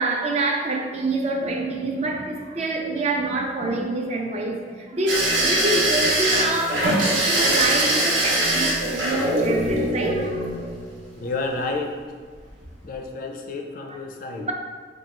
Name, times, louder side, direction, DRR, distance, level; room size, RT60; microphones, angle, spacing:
voice 1, 0.0-10.6 14.4-14.5, right 2 dB, 35° right, 0.4 m, -26 dB
sound 1, 5.1-11.1 12.3-12.7 12.9-13.0, right 1 dB, 75° right, 0.8 m, -22 dB
voice 2, 11.2-11.9 12.8-14.5, left 3 dB, 50° left, 0.4 m, -30 dB
3.0 x 2.3 x 4.2 m
head